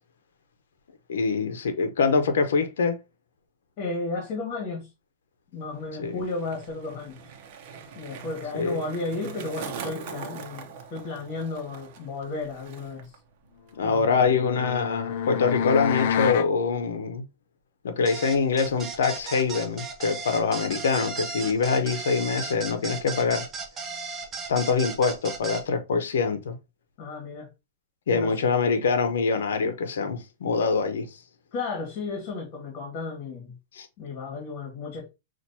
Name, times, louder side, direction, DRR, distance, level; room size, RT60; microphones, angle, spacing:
voice 1, 1.1-3.0 6.0-6.2 8.5-8.8 13.8-17.2 17.8-23.4 24.5-26.6 28.1-31.1 33.8-33.9, left 5 dB, 85° left, 0.7 m, -24 dB
voice 2, 3.8-4.9 5.5-7.2 7.9-13.1 13.8-14.3 27.0-27.5 28.1-28.3 31.5-33.6 34.0-35.1, left 3 dB, 40° left, 1.8 m, -33 dB
Skateboard, 5.6-13.2 13.4-13.9, right 6 dB, 50° right, 0.8 m, -42 dB
sound 1, 13.9-16.5, left 8 dB, 60° left, 0.4 m, -28 dB
sound 2, 18.1-25.6, right 4 dB, 20° right, 0.7 m, -35 dB
5.8 x 2.5 x 2.8 m
hypercardioid pair, 145°, 0 cm